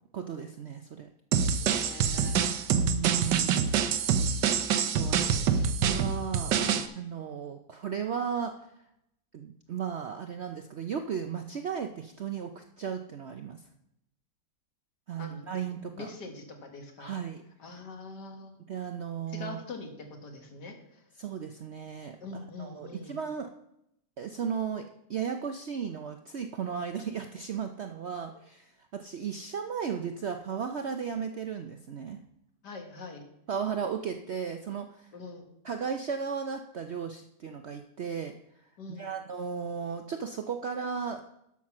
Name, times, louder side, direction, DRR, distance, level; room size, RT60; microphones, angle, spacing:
voice 1, 0.1-1.1 2.7-3.8 4.7-6.6 7.0-8.5 9.3-13.6 15.1-16.1 17.0-17.4 18.7-19.6 21.2-22.2 22.6-23.5 24.2-24.8 25.1-32.2 33.5-35.1 35.6-38.3 39.0-41.3, right 7 dB, 65° right, 6 dB, 0.7 m, -35 dB
sound 1, 1.3-6.9, right 7 dB, 85° right, 1.4 m, -26 dB
voice 2, 1.6-2.7 5.0-5.6 6.6-6.8 15.2-15.4 15.9-17.2 17.6-18.6 19.3-21.0 22.2-23.2 32.6-33.3 35.1-35.5 38.8-39.2, left 3 dB, 75° left, 3 dB, 2.2 m, -44 dB
11.5 x 6.0 x 6.0 m, 0.80 s
omnidirectional pair, 1.8 m